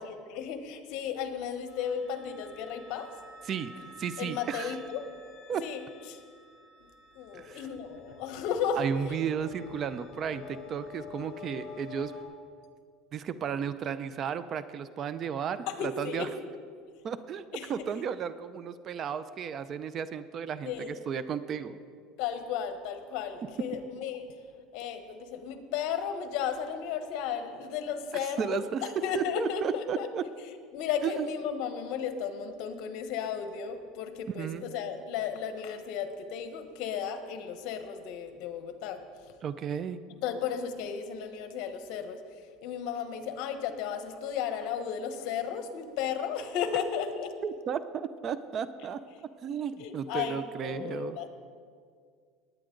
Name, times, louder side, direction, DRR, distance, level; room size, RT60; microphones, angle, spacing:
voice 1, 0.0-3.1 3.7-3.9 4.2-5.1 5.6-6.2 6.8-6.9 7.1-8.8 9.1-9.2 15.7-16.3 17.5-17.7 20.6-21.1 22.2-24.3 24.7-30.1 30.7-39.0 40.2-42.2 42.6-47.3 49.8-51.3, left 7 dB, 65° left, 8 dB, 1.2 m, -34 dB
sound 1, 1.7-12.2, left 4 dB, 40° left, 2.7 m, -48 dB
voice 2, 4.0-4.8 5.5-5.7 7.3-7.6 8.8-12.1 13.1-16.3 17.0-17.4 17.7-21.8 28.4-28.8 29.1-30.2 31.0-31.3 34.3-34.6 39.4-40.0 47.4-49.0 49.4-51.2, right 7 dB, 35° right, 14 dB, 0.5 m, -34 dB
19.5 x 9.2 x 3.9 m, 2.1 s
supercardioid pair, 130°, 0 cm